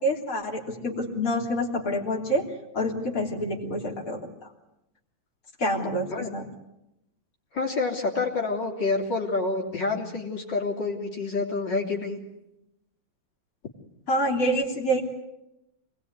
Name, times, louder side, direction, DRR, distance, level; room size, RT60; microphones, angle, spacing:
voice 1, 0.0-2.5 2.7-4.5 5.6-6.4 14.1-15.0, equal, 45° left, -1 dB, 3.8 m, -27 dB
voice 2, 7.5-12.2, left 3 dB, 65° left, -1 dB, 4.0 m, -28 dB
27.5 x 20.5 x 9.6 m, 0.87 s
omnidirectional pair, 2.1 m